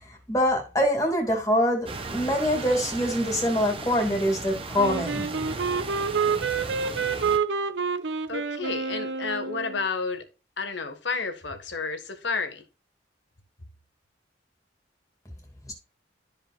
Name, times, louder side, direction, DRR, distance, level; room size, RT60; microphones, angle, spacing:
voice 1, 0.1-5.3 15.7-15.8, equal, 20° left, 2.4 m, -24 dB
sound 1, 1.9-7.4, right 3 dB, 30° right, 1.0 m, -36 dB
Wind instrument woodwind instrument, 4.8-9.9, right 5 dB, 80° right, 0.7 m, -28 dB
voice 2, 8.3-10.2 10.6-12.6, left 4 dB, 80° left, 1.4 m, -31 dB
13.0 x 5.1 x 2.3 m
head